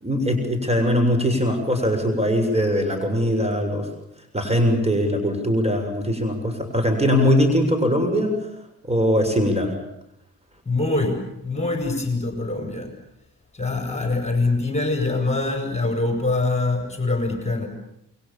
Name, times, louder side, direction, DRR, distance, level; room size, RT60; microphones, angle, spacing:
voice 1, 0.0-3.9 4.3-8.3 8.8-9.7, equal, 15° right, 6 dB, 7.3 m, -21 dB
voice 2, 10.7-12.9 13.5-17.7, left 2 dB, 15° left, 4 dB, 7.0 m, -24 dB
29.0 x 23.0 x 7.3 m, 0.81 s
hypercardioid pair, 40°, 38 cm